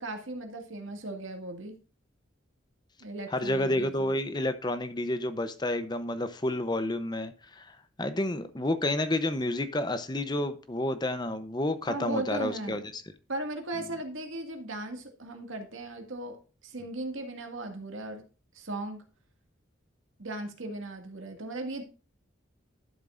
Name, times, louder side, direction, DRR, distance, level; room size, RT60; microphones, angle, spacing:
voice 1, 0.0-1.8 3.0-4.1 11.9-12.9 13.3-16.4 16.6-18.2 18.5-19.0 20.2-21.8, right 2 dB, 80° right, 2.0 m, -37 dB
voice 2, 3.3-13.0, left 1 dB, 20° left, 0.7 m, -30 dB
12.0 x 7.4 x 2.5 m
head